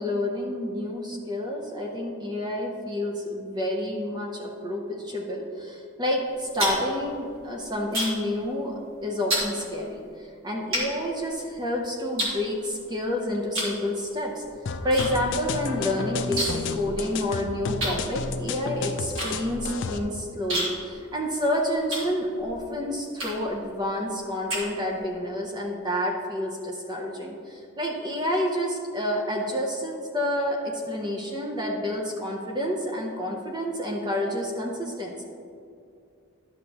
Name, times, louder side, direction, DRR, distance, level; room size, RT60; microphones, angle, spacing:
voice 1, 0.0-14.4 14.8-35.2, left 1 dB, 20° right, 0 dB, 0.7 m, -29 dB
sound 1, 6.3-8.3 8.6-8.9 9.3-9.5 10.1-10.2 10.7-11.7 12.2-13.0 13.5-13.8 14.1-15.1 15.4-15.5 15.7-16.7 17.0-17.1 17.8-22.6 23.1-23.6 24.1-25.1, equal, 65° right, 2.0 m, -31 dB
sound 2, 14.7-20.0, left 4 dB, 55° left, 0.4 m, -32 dB
11.0 x 6.6 x 2.9 m, 2.5 s
head